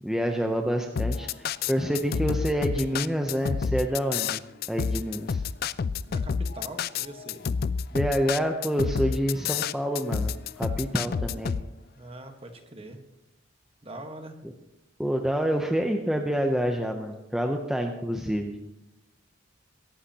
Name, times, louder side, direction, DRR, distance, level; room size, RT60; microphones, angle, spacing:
voice 1, 0.0-4.4 4.7-5.4 7.9-11.5 15.0-18.6, equal, 5° right, 3 dB, 0.7 m, -27 dB
sound 1, 1.0-11.6, left 6 dB, 50° left, 0.3 m, -29 dB
voice 2, 5.9-7.4 11.9-13.0 13.8-14.4, right 1 dB, 30° right, 5 dB, 1.4 m, -42 dB
22.0 x 11.5 x 2.9 m, 0.97 s
head